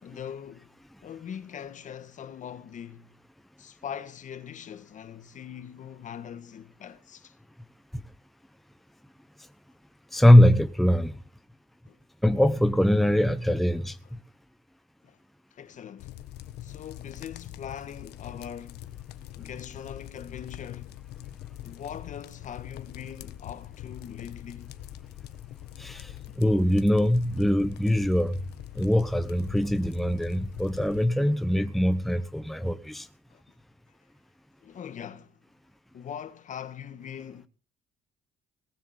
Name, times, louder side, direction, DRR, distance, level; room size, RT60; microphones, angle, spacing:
voice 1, 0.0-3.2 3.6-7.3 11.9-12.0 15.0-15.2 15.5-16.2 16.6-18.8 19.4-21.0 21.6-24.7 33.3-33.4 34.6-35.4 35.9-37.5, left 8 dB, 45° left, 1.7 m, -41 dB
voice 2, 10.1-11.1 12.2-14.0 25.8-26.1 26.4-28.4 28.8-33.1, left 1 dB, ahead, 1.0 m, -22 dB
sound 1, 16.0-31.1, left 13 dB, 75° left, 1.5 m, -43 dB
19.5 x 7.4 x 8.1 m
cardioid pair, 110°, 17 cm